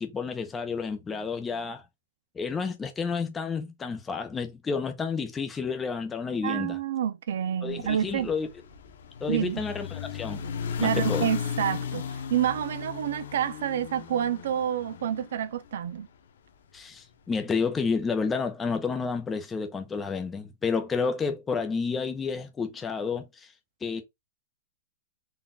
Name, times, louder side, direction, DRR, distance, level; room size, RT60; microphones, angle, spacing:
voice 1, 0.0-1.8 2.4-6.8 7.6-8.5 9.2-10.4 10.8-11.3 16.7-23.3 23.8-24.0, left 5 dB, 10° left, 0.6 m, -30 dB
voice 2, 6.4-8.3 9.3-9.6 10.8-16.1, right 9 dB, 70° right, 0.4 m, -28 dB
sound 1, 7.7-16.0, left 7 dB, 90° left, 0.7 m, -35 dB
4.0 x 2.3 x 3.7 m
supercardioid pair, 170°, 0 cm